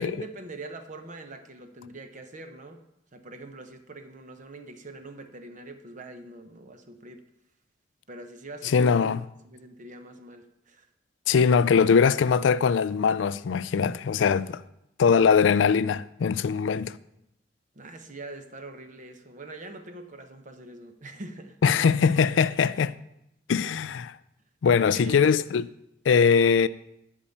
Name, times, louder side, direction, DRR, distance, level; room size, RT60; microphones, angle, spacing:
voice 1, 0.0-2.8 3.1-7.2 8.1-9.0 9.4-10.9 17.7-21.6 24.8-25.2, right 2 dB, 45° right, 0.9 m, -43 dB
voice 2, 8.7-9.2 11.3-14.6 15.0-17.0 21.6-22.9 23.5-24.2 24.6-25.7 26.1-26.7, left 6 dB, 85° left, 0.4 m, -21 dB
10.0 x 5.5 x 8.4 m
head